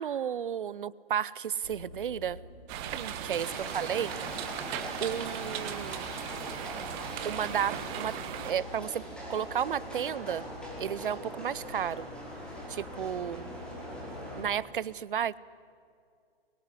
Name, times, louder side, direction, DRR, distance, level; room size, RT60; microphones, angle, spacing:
voice 1, 0.0-2.4 2.9-4.1 5.0-6.1 7.2-8.2 8.4-9.0 9.3-10.5 10.8-12.1 12.7-13.5 14.4-15.4, right 9 dB, 60° right, 22 dB, 0.7 m, -33 dB
sound 1, 1.6-14.5, left 3 dB, 85° left, 2.7 m, -49 dB
sound 2, 2.7-8.5, right 10 dB, 25° right, 1.4 m, -38 dB
Livestock farm animals working animals, 3.3-14.4, equal, 5° left, 5.6 m, -42 dB
23.5 x 22.5 x 9.8 m, 2.3 s
figure-of-eight pair, 130°, 30 cm